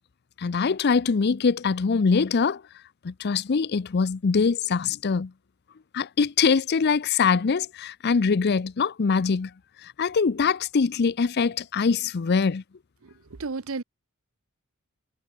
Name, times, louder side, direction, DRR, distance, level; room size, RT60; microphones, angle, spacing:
voice 1, 0.4-2.6 3.0-5.3 5.9-9.5 9.8-12.6, left 5 dB, 50° left, 0.5 m, -23 dB
voice 2, 13.4-13.8, right 4 dB, 70° right, 0.8 m, -32 dB
head